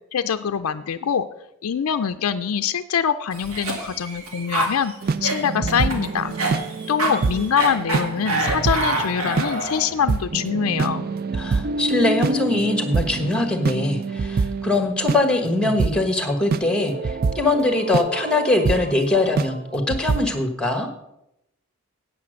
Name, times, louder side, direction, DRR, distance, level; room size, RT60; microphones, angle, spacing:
voice 1, 0.1-1.3 1.6-4.9 5.2-6.3 6.9-11.1, left 7 dB, 70° left, 8 dB, 0.4 m, -24 dB
Cough, 3.3-9.9, right 2 dB, 75° right, 2.4 m, -27 dB
sound 1, 5.0-15.2 15.6-15.9 16.5-19.0 19.3-19.6 19.9-20.2, right 4 dB, 40° right, 0.4 m, -26 dB
voice 2, 11.3-20.9, left 2 dB, 5° left, 6 dB, 1.2 m, -22 dB
8.7 x 8.4 x 6.3 m, 0.84 s
head